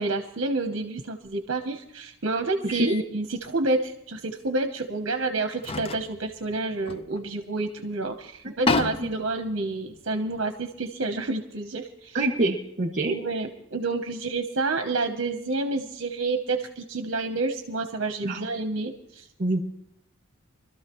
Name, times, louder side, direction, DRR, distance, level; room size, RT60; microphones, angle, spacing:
voice 1, 0.0-12.2 13.0-19.3, right 3 dB, 60° right, 6 dB, 0.9 m, -29 dB
sound 1, 1.3-1.4 2.7-3.0 3.4-3.6 4.8-4.9 5.5-7.7 8.0-8.1 8.4-10.9, left 3 dB, 25° left, 0.4 m, -32 dB
voice 2, 2.6-2.9 8.4-8.5 8.8-9.1 12.1-13.2 18.2-18.4 19.4-19.6, right 2 dB, 40° right, 4 dB, 1.9 m, -26 dB
24.5 x 13.0 x 3.1 m, 0.79 s
head